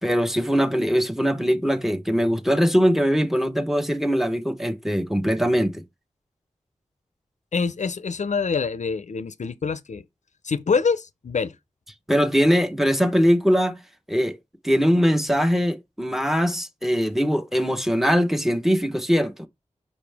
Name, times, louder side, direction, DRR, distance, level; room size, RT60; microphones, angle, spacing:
voice 1, 0.0-5.8 12.1-13.8 14.1-14.4 14.6-19.5, equal, ahead, 1.0 m, -21 dB
voice 2, 7.5-10.0 10.4-11.6, left 5 dB, 70° left, 0.6 m, -25 dB
5.6 x 4.9 x 3.4 m
cardioid pair, 50°, 13 cm